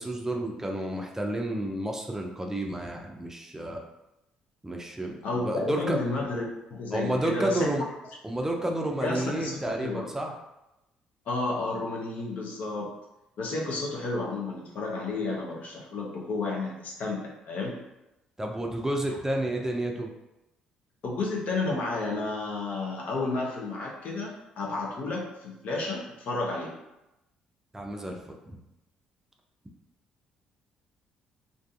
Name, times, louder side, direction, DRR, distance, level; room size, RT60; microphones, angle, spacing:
voice 1, 0.0-3.8 4.6-6.0 6.9-7.8 8.2-10.3 18.4-20.1 27.7-28.6, right 1 dB, 15° right, 1 dB, 0.4 m, -30 dB
voice 2, 5.2-7.7 9.0-10.1 11.3-12.9 13.4-17.7 21.0-26.7, left 3 dB, 60° left, -2 dB, 0.7 m, -31 dB
2.5 x 2.5 x 2.3 m, 0.93 s
hypercardioid pair, 55°, 3 cm